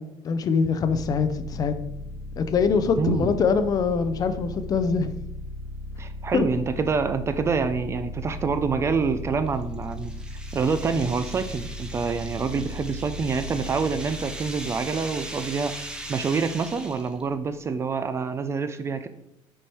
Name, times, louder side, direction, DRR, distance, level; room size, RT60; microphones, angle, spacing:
voice 1, 0.0-1.7 2.4-5.1 6.3-6.5, left 5 dB, 35° left, 10 dB, 0.5 m, -23 dB
sound 1, 0.8-17.5, left 1 dB, 80° left, 1.8 m, -37 dB
voice 2, 3.0-3.3 6.0-10.1 10.5-19.1, right 5 dB, 25° right, 11 dB, 0.4 m, -27 dB
sound 2, 9.5-17.2, right 1 dB, 10° right, 0.7 m, -40 dB
6.2 x 4.7 x 4.5 m, 0.84 s
cardioid pair, 160°, 11 cm